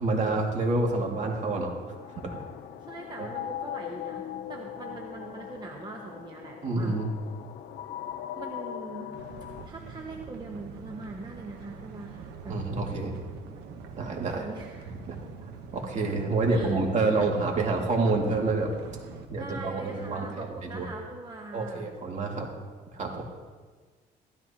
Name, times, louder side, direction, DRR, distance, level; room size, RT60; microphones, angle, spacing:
voice 1, 0.0-1.7 2.2-2.4 6.6-7.1 12.5-13.1 14.0-14.5 15.1-15.2 15.7-18.7 19.3-20.9 21.5-22.5 22.9-23.2, right 3 dB, 45° right, 0 dB, 2.3 m, -28 dB
sound 1, 0.9-9.7, left 10 dB, 60° left, 0.8 m, -40 dB
voice 2, 2.9-6.9 8.4-9.1 9.6-12.6 13.6-13.7 14.3-14.9 16.5-16.7 19.4-21.9, right 3 dB, 25° right, 0 dB, 1.1 m, -42 dB
sound 2, 9.1-19.2, right 5 dB, 80° right, 1.1 m, -44 dB
15.5 x 13.0 x 2.9 m, 1.5 s
cardioid pair, 110°, 17 cm